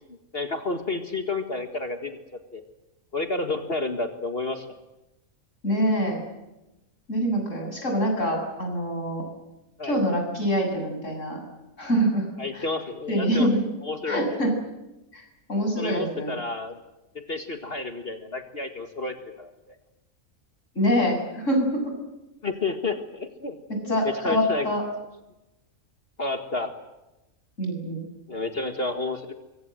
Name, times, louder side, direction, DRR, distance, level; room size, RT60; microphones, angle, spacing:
voice 1, 0.3-2.2 2.5-2.6 3.1-4.7 9.8-10.0 12.4-13.5 13.8-14.4 15.8-16.8 17.1-19.5 22.4-23.6 23.9-24.7 26.2-26.7 28.3-29.3, left 3 dB, 45° left, 6 dB, 2.0 m, -30 dB
voice 2, 5.6-6.2 7.1-9.2 9.8-11.4 11.8-12.3 12.5-12.7 13.1-13.6 14.1-14.5 15.1-16.4 20.8-21.8 23.7-24.8 27.6-28.1, equal, 60° left, 3 dB, 7.7 m, -25 dB
26.0 x 23.5 x 7.8 m, 0.98 s
omnidirectional pair, 1.4 m